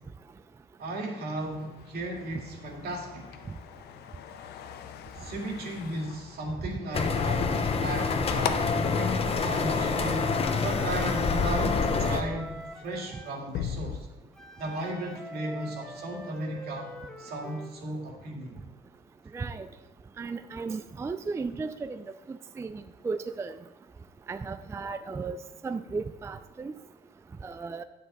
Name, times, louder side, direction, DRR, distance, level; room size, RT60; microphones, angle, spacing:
voice 1, 0.8-3.4 5.1-10.3 10.6-14.1 14.6-18.6, right 1 dB, 70° right, 0 dB, 2.3 m, -35 dB
sound 1, 1.4-10.4 10.7-11.2 11.8-12.0 12.3-14.0, left 9 dB, 75° left, 0.7 m, -41 dB
sound 2, 6.9-12.2, left 4 dB, 35° left, 0.9 m, -27 dB
Wind instrument woodwind instrument, 9.3-13.4 14.3-17.7, right 1 dB, 5° left, 1.2 m, -44 dB
voice 2, 19.3-19.7 20.2-23.6 24.3-25.4 25.6-26.7 27.4-27.8, right 4 dB, 15° right, 10 dB, 0.3 m, -35 dB
9.3 x 7.8 x 4.1 m, 1.1 s
cardioid pair, 110°, 17 cm